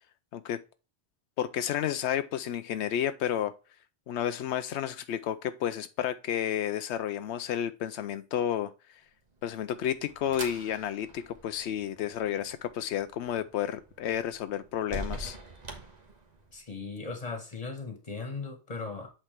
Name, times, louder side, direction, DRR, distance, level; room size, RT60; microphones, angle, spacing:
voice 1, 1.4-3.5 4.1-8.7 9.4-15.4, left 10 dB, 90° left, 0.9 m, -31 dB
sound 1, 9.3-16.7, right 1 dB, 40° right, 1.4 m, -45 dB
voice 2, 16.5-19.1, left 4 dB, 35° left, 1.8 m, -38 dB
8.1 x 4.3 x 3.4 m
omnidirectional pair, 1.1 m